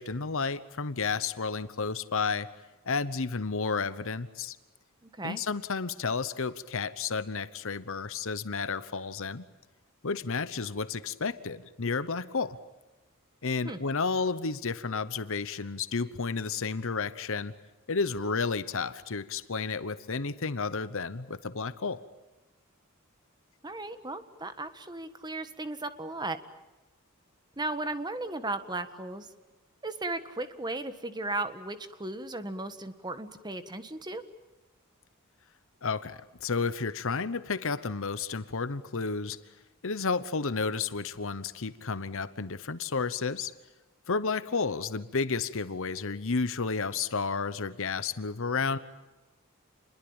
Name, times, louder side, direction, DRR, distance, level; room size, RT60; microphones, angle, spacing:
voice 1, 0.0-2.5 2.8-4.6 5.2-9.4 10.0-12.6 13.4-17.5 17.9-22.0 35.8-39.4 39.8-43.5 44.1-48.8, left 4 dB, 65° left, 14 dB, 1.0 m, -31 dB
voice 2, 5.0-5.4 13.6-13.8 23.6-26.4 27.6-29.3 29.8-34.2, right 2 dB, 20° right, 10 dB, 1.5 m, -36 dB
28.5 x 21.5 x 8.9 m, 1.1 s
head